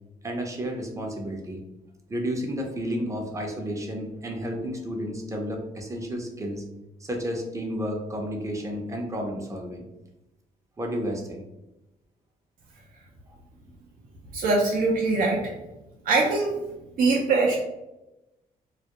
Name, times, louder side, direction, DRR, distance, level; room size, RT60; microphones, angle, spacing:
voice 1, 0.2-1.6 2.1-6.6 7.0-9.9 10.8-11.4 13.3-13.4, equal, 20° right, 1 dB, 0.6 m, -31 dB
voice 2, 14.3-15.5 16.0-16.5 17.0-17.6, right 3 dB, 65° right, -2 dB, 0.5 m, -22 dB
2.3 x 2.0 x 2.8 m, 0.97 s
cardioid pair, 80°, 16 cm